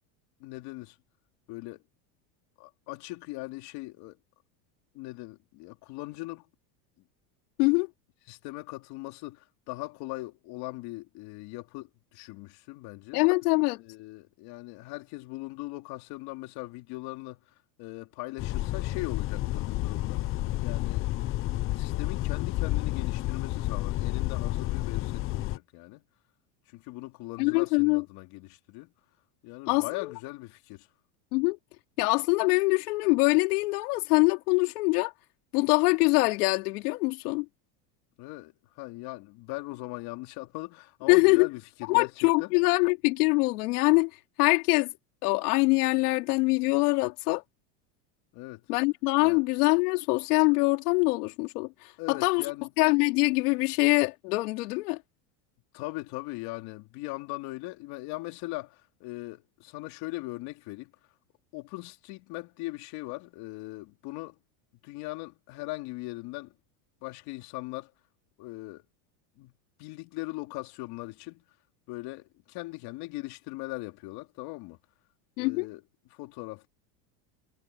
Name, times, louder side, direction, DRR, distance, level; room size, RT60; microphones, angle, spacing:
voice 1, 0.4-1.0 1.5-1.8 2.6-4.2 4.9-6.5 8.3-13.2 13.8-20.2 20.6-21.1 21.7-26.0 26.7-28.9 29.4-30.9 38.2-42.5 48.3-48.7 49.2-49.4 52.0-52.7 55.7-60.9 61.5-64.4 64.8-66.5 67.0-67.9 68.4-68.8 69.4-69.5 69.8-71.4 71.9-74.8 75.4-75.8 76.1-76.7, left 21 dB, 55° left, 3.2 m, -40 dB
voice 2, 13.1-13.8 27.4-28.0 29.7-30.1 31.3-31.6 32.0-35.1 35.5-37.5 41.1-41.5 41.9-44.9 45.2-47.4 48.7-52.4 52.8-55.0 75.4-75.7, left 26 dB, 75° left, 2.5 m, -24 dB
sound 1, 18.4-25.6, left 16 dB, 30° left, 0.6 m, -30 dB
supercardioid pair, 150°, 46 cm